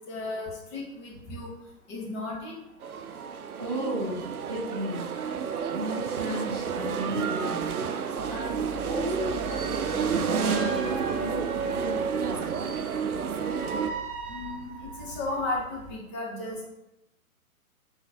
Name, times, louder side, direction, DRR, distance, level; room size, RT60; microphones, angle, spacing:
voice 1, 0.1-1.5 1.9-2.5 14.3-14.7 15.0-16.7, left 2 dB, 20° left, -3 dB, 0.9 m, -34 dB
sound 1, 2.8-13.9, right 6 dB, 80° right, 0.5 m, -30 dB
voice 2, 3.6-4.2 4.5-5.1 5.7-12.5, equal, 20° right, -7 dB, 0.3 m, -35 dB
sound 2, 8.2-16.0, right 2 dB, 35° right, 1.1 m, -41 dB
4.9 x 3.8 x 2.6 m, 0.89 s
figure-of-eight pair, 125°, 43 cm